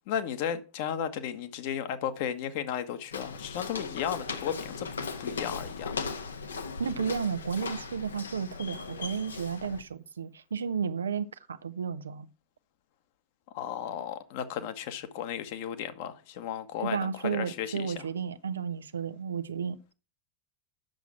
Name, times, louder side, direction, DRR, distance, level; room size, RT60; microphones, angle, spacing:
voice 1, 0.1-4.9 5.2-5.9 13.5-18.0, left 9 dB, 50° left, 1.3 m, -34 dB
Walk footsteps, 3.1-9.8, left 5 dB, 70° left, 1.3 m, -38 dB
voice 2, 6.8-12.3 16.8-19.9, right 6 dB, 70° right, 0.8 m, -33 dB
9.1 x 7.1 x 5.9 m
figure-of-eight pair, 90°, 0 cm